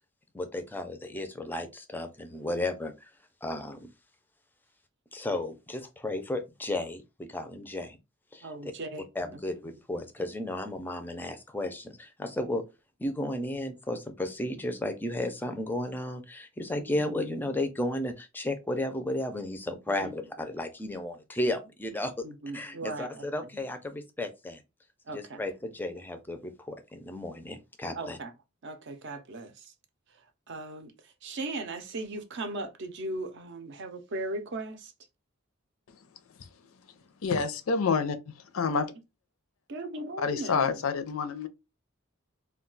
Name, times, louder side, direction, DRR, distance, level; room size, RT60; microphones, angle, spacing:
voice 1, 0.3-3.1 3.4-3.9 5.1-8.0 8.3-8.7 9.2-12.6 13.0-22.3 22.5-24.6 25.1-28.2, left 1 dB, 10° left, 0.4 m, -34 dB
voice 2, 8.4-9.1 16.7-16.8 19.9-20.1 22.2-23.2 25.1-25.4 28.0-28.3 28.6-29.7 30.5-30.9 31.2-34.9 39.7-40.8, right 2 dB, 55° right, 0.5 m, -37 dB
voice 3, 37.2-38.2 38.5-38.9 40.2-41.5, left 5 dB, 75° left, 0.5 m, -28 dB
2.3 x 2.2 x 3.8 m
head